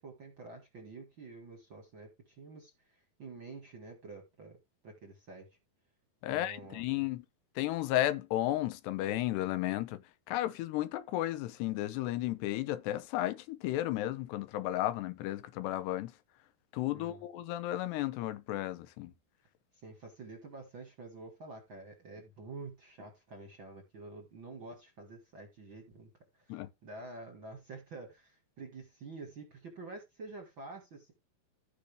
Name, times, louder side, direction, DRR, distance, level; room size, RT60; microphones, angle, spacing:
voice 1, 0.0-4.6 4.8-5.5 6.3-6.8 16.9-17.2 19.8-26.1 26.5-31.1, right 3 dB, 45° right, 1.6 m, -48 dB
voice 2, 6.2-7.2 7.6-10.0 10.3-16.1 16.7-19.1 26.5-26.7, left 14 dB, 85° left, 3.1 m, -33 dB
15.0 x 5.4 x 3.4 m
omnidirectional pair, 4.7 m